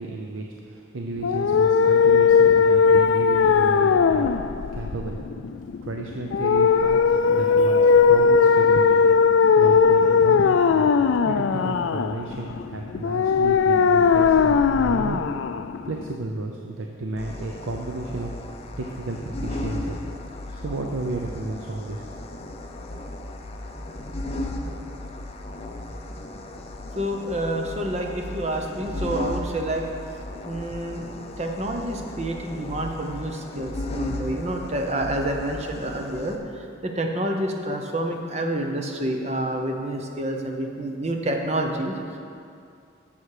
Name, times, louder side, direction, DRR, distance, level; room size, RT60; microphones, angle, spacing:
voice 1, 0.0-4.3 4.7-5.3 5.8-9.0 9.3-10.9 11.2-15.2 15.9-18.3 18.8-20.0 20.5-22.0, right 2 dB, 80° right, 2 dB, 0.6 m, -33 dB
sound 1, 1.2-16.2, left 5 dB, 70° left, 0.3 m, -19 dB
sound 2, 17.2-36.4, left 1 dB, 30° left, 0.6 m, -35 dB
voice 2, 26.9-29.8 30.4-31.0 31.4-42.2, right 1 dB, 35° right, 2 dB, 0.9 m, -28 dB
11.5 x 7.2 x 4.9 m, 2.5 s
head